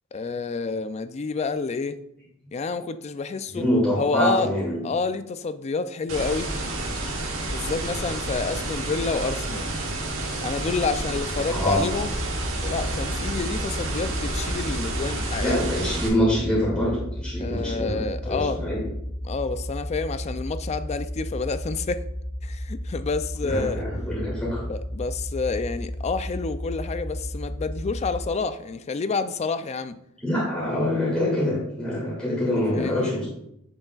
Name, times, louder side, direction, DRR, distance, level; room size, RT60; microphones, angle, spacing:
voice 1, 0.1-2.0 2.5-3.7 4.0-4.5 4.8-6.5 7.4-9.7 10.4-12.2 12.6-15.7 17.4-18.6 19.2-22.0 22.4-23.8 24.7-30.0 32.7-33.2, left 4 dB, 30° left, 12 dB, 0.3 m, -29 dB
voice 2, 3.5-4.8 11.5-11.8 15.4-18.8 23.4-24.7 30.2-33.3, left 1 dB, 5° left, -8 dB, 2.3 m, -25 dB
sound 1, 6.1-16.1, right 2 dB, 65° right, 1.5 m, -30 dB
sound 2, 12.0-28.3, equal, 50° left, 1.3 m, -33 dB
7.9 x 6.9 x 2.4 m, 0.78 s
head